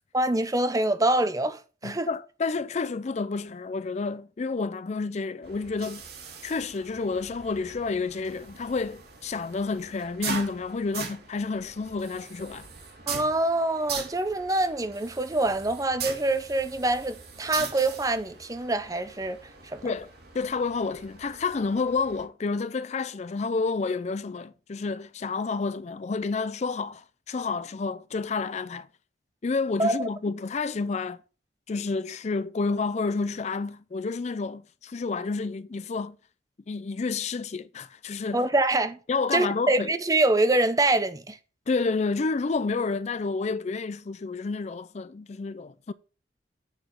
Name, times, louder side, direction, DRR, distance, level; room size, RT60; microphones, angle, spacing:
voice 1, 0.1-2.1 13.1-19.4 19.7-19.8 29.8-30.1 38.3-39.0 39.3-41.4, right 2 dB, 20° right, 0.7 m, -25 dB
voice 2, 1.8-6.0 6.4-12.7 19.8-20.1 20.3-28.9 29.4-31.2 31.7-36.2 36.7-38.5 39.1-39.9 41.7-45.9, left 4 dB, 40° left, 0.4 m, -30 dB
sound 1, 5.4-22.3, right 5 dB, 55° right, 2.0 m, -41 dB
8.3 x 5.0 x 5.8 m
head